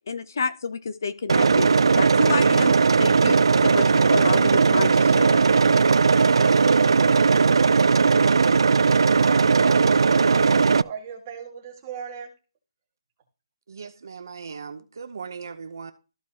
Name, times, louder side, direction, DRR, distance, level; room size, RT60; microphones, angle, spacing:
voice 1, 0.1-1.7 2.0-2.7 3.0-5.4, left 5 dB, 40° left, 0.5 m, -29 dB
sound 1, 1.3-10.8, right 5 dB, 85° right, 0.3 m, -18 dB
voice 2, 8.8-12.3, right 7 dB, 20° right, 1.8 m, -38 dB
voice 3, 13.7-15.9, right 5 dB, 45° right, 0.6 m, -38 dB
14.0 x 4.7 x 2.8 m
hypercardioid pair, 180°, 3 cm